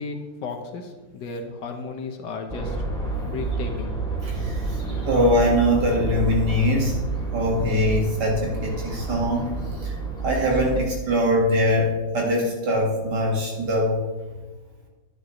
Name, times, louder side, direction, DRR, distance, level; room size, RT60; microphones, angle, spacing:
voice 1, 0.0-2.9 3.2-3.9, left 4 dB, 70° left, 5 dB, 1.6 m, -34 dB
sound 1, 2.5-10.8, right 3 dB, ahead, 1.9 m, -29 dB
voice 2, 4.2-4.8 5.1-6.9 7.3-10.0 10.2-14.0, equal, 60° right, -1 dB, 2.5 m, -22 dB
10.5 x 9.9 x 3.1 m, 1.2 s
omnidirectional pair, 2.0 m